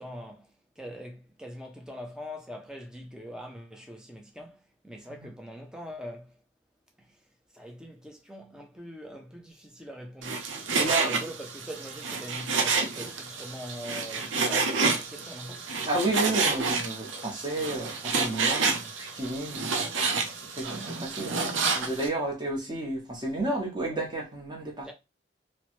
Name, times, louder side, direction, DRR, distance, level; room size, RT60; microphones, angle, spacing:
voice 1, 0.0-6.4 7.0-7.2 7.5-10.5 10.8-15.7 24.8-24.9, equal, 5° right, 0.5 m, -43 dB
Frying (food), 10.2-22.1, right 4 dB, 80° right, 0.6 m, -29 dB
voice 2, 10.7-11.1 15.9-24.9, right 2 dB, 25° right, 0.9 m, -32 dB
3.0 x 2.1 x 3.0 m
head